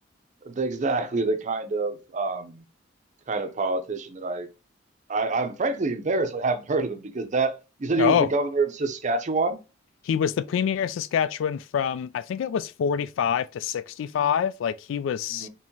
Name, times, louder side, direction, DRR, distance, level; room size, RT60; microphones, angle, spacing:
voice 1, 0.4-2.7 3.3-4.5 5.1-9.6 15.3-15.5, right 3 dB, 40° right, 0.5 m, -26 dB
voice 2, 8.0-8.3 10.0-15.5, left 8 dB, 75° left, 0.3 m, -26 dB
4.5 x 3.0 x 2.8 m
head